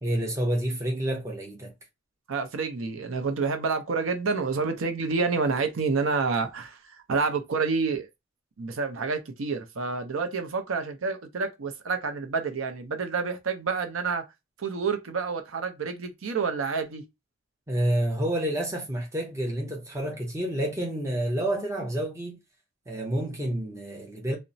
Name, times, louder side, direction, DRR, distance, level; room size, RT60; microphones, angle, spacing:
voice 1, 0.0-1.7 17.7-22.4 22.9-24.4, right 1 dB, 15° right, 0.7 m, -29 dB
voice 2, 2.3-8.1 8.6-14.2 14.6-17.0, right 4 dB, 80° right, 0.6 m, -28 dB
2.9 x 2.1 x 2.6 m
head